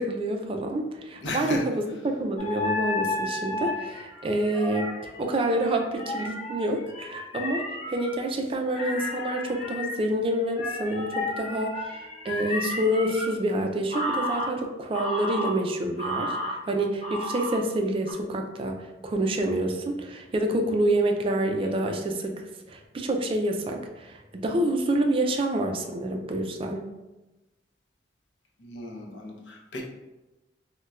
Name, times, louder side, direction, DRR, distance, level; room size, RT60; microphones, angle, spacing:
voice 1, 0.0-4.9 5.2-12.0 12.2-26.8, right 1 dB, 30° right, 3 dB, 0.3 m, -27 dB
voice 2, 1.2-1.6 28.6-29.8, left 2 dB, 85° left, 0 dB, 0.6 m, -35 dB
sound 1, 2.4-8.1 8.7-13.3 13.9-14.5 14.9-15.5 16.0-16.5 17.0-17.6 18.1-18.2, left 2 dB, 45° left, 0.7 m, -32 dB
4.1 x 2.1 x 2.3 m, 1.0 s
head